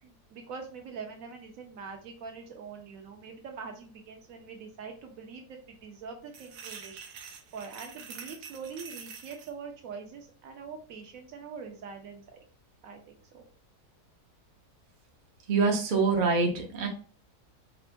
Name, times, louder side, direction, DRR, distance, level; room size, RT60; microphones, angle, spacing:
voice 1, 0.0-7.1 7.5-12.4 12.8-13.4, right 5 dB, 65° right, 3 dB, 1.0 m, -43 dB
sound 1, 6.3-9.5, right 6 dB, 90° right, 1.2 m, -46 dB
voice 2, 15.5-16.9, right 4 dB, 50° right, 1 dB, 0.6 m, -25 dB
4.3 x 2.1 x 2.6 m, 0.39 s
omnidirectional pair, 1.7 m